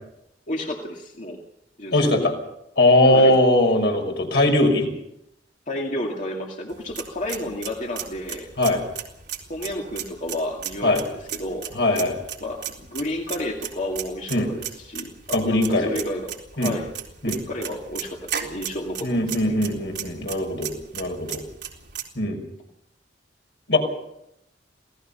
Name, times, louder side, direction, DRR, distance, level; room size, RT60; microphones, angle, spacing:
voice 1, 0.5-1.4 1.8-2.3 3.0-3.4 5.7-8.5 9.5-11.7 12.4-15.1 15.4-16.9 17.3-19.6, left 1 dB, 45° left, 0 dB, 2.3 m, -31 dB
voice 2, 1.9-2.3 2.8-4.9 8.6-8.8 10.8-11.0 11.7-12.2 14.3-14.5 15.3-15.9 16.6-16.7 17.2-17.4 19.0-21.4 22.2-22.4 23.7-23.8, left 1 dB, 65° left, 3 dB, 5.9 m, -20 dB
sound 1, 6.7-22.0, right 9 dB, 65° right, 4.0 m, -36 dB
27.0 x 18.0 x 5.6 m, 0.82 s
head